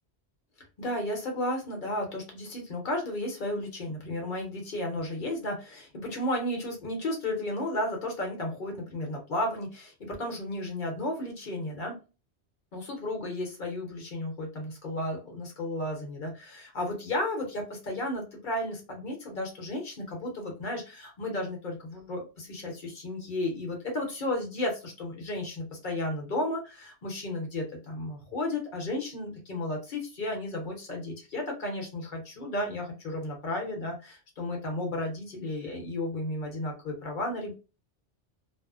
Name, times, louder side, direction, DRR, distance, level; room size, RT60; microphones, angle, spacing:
voice 1, 0.8-12.0 12.7-37.5, left 1 dB, 50° left, 1 dB, 0.9 m, -33 dB
2.6 x 2.0 x 2.3 m, 0.31 s
omnidirectional pair, 1.1 m